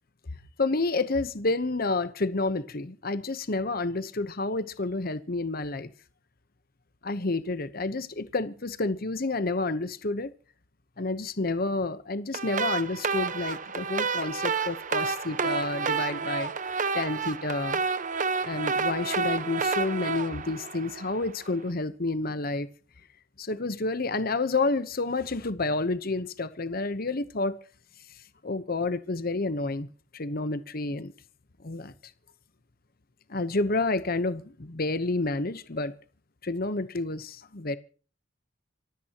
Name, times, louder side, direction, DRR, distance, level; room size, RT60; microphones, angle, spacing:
voice 1, 0.6-5.9 7.0-10.3 11.0-16.5 16.9-17.8 18.4-22.7 23.4-27.6 28.4-29.9 30.1-31.1 31.6-31.9 33.3-35.9 36.4-37.8, left 3 dB, 50° left, 1.0 m, -29 dB
sound 1, 12.3-21.4, right 5 dB, 40° right, 1.1 m, -30 dB
25.5 x 15.5 x 3.0 m
head